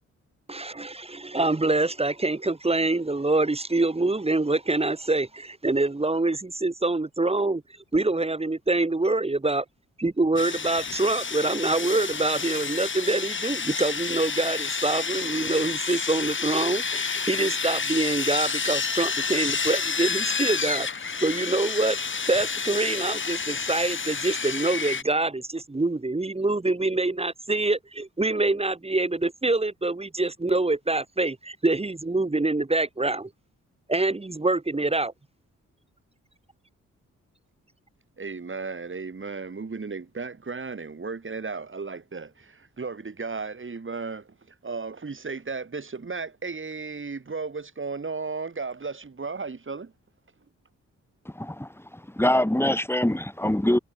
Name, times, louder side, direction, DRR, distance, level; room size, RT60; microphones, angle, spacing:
voice 1, 0.5-7.6 7.9-9.6 10.0-20.9 21.2-22.0 22.3-33.3 33.9-35.1, right 2 dB, 20° right, 1.4 m, -25 dB
Sawing, 10.4-25.0, left 5 dB, 40° left, 1.6 m, -29 dB
voice 2, 38.2-49.9, right 4 dB, 40° right, 6.2 m, -35 dB
voice 3, 51.3-53.8, left 1 dB, 10° left, 3.4 m, -24 dB
supercardioid pair, 50°, 30 cm